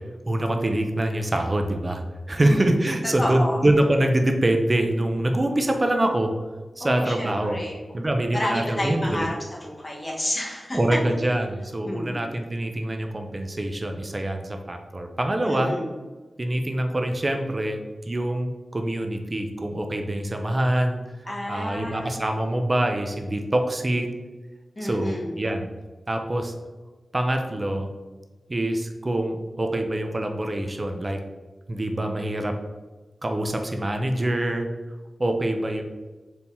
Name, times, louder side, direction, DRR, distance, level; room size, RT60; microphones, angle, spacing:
voice 1, 0.3-2.0 2.3-6.3 6.8-7.6 7.9-9.3 10.7-15.7 16.4-17.8 18.1-21.0 21.5-24.1 24.8-25.7 26.1-26.5 27.1-27.9 28.5-31.2 31.7-32.6 33.2-34.7 35.2-35.8, right 1 dB, 40° right, 4 dB, 0.5 m, -25 dB
voice 2, 2.4-2.8 3.2-3.6 6.8-7.8 8.1-10.8 11.8-12.2 15.4-15.9 21.2-22.1 24.7-25.3, left 1 dB, 35° left, -3 dB, 1.3 m, -30 dB
4.5 x 3.4 x 2.7 m, 1.2 s
cardioid pair, 45°, 0 cm